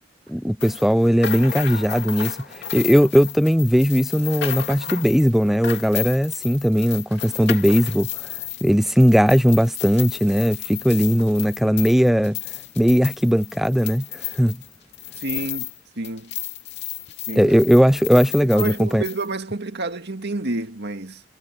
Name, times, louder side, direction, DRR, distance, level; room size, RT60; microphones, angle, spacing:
voice 1, 0.3-12.4 12.8-14.6 17.4-19.0, equal, ahead, 0.5 m, -18 dB
sound 1, 0.6-15.8 16.0-19.3, left 12 dB, 60° left, 2.6 m, -33 dB
voice 2, 15.2-15.7 16.0-16.3 17.3-17.5 18.1-21.2, right 2 dB, 60° right, 2.2 m, -29 dB
head